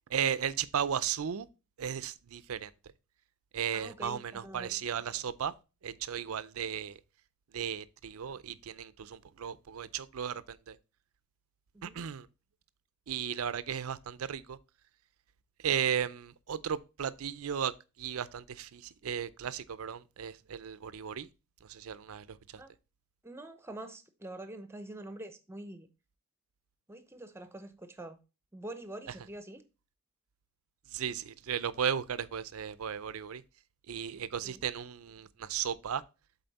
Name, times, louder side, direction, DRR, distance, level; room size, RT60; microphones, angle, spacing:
voice 1, 0.1-1.5 1.8-2.7 3.5-5.5 5.8-7.0 7.5-10.8 11.8-12.3 13.1-14.6 15.6-17.7 18.0-21.3 21.7-22.4 30.9-33.4 33.9-36.0, right 8 dB, 75° right, 0.5 m, -35 dB
voice 2, 3.7-4.7 11.7-12.0 22.6-22.7 23.2-25.9 26.9-28.2 28.5-29.6 34.4-34.6, right 1 dB, 10° right, 0.7 m, -45 dB
7.8 x 4.2 x 4.1 m
head